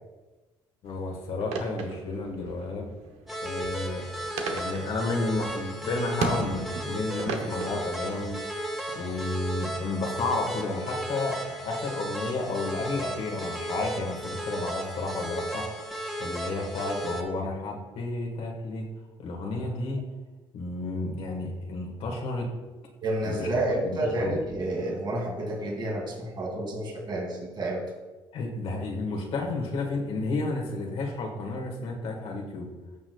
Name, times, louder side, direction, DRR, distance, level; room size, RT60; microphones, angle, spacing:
voice 1, 0.8-2.9 3.4-4.1 4.5-15.7 16.2-18.9 19.2-20.0 20.5-22.5 23.2-24.4 28.3-32.7, left 2 dB, 70° left, 0 dB, 1.7 m, -32 dB
sound 1, 0.8-8.4, right 4 dB, 85° right, 1.0 m, -37 dB
sound 2, 3.3-17.2, right 1 dB, ahead, 1.7 m, -35 dB
voice 2, 23.0-27.8, right 1 dB, 45° right, -2 dB, 2.6 m, -30 dB
14.5 x 6.2 x 2.3 m, 1.2 s
supercardioid pair, 85°, 11 cm